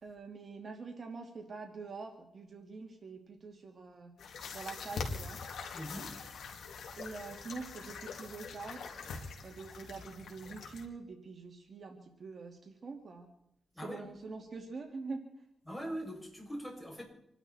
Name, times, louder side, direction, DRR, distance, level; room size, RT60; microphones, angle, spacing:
voice 1, 0.0-4.1 4.5-5.4 7.0-9.0 9.4-13.3 13.8-15.3, right 4 dB, 50° right, 2.7 m, -45 dB
sound 1, 4.2-10.9, left 5 dB, 85° left, 2.8 m, -43 dB
voice 2, 5.7-6.2 13.7-14.1 15.7-17.0, equal, 5° left, 7.1 m, -42 dB
27.0 x 12.0 x 4.4 m
cardioid pair, 90°, 0 cm